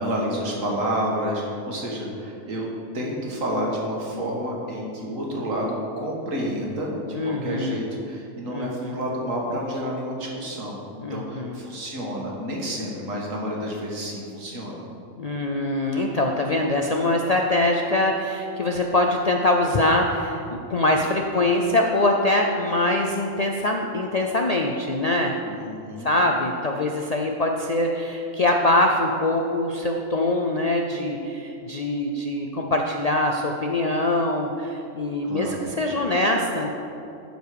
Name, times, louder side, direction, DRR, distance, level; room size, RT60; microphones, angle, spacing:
voice 1, 0.0-2.7 2.9-10.8 11.1-14.9 25.4-26.1 35.2-35.7, equal, 80° right, -2 dB, 1.9 m, -29 dB
voice 2, 7.1-7.8 8.5-9.0 11.0-11.6 15.2-25.4 26.0-36.7, left 1 dB, 55° left, 1 dB, 0.4 m, -23 dB
11.5 x 5.2 x 4.8 m, 2.7 s
omnidirectional pair, 1.3 m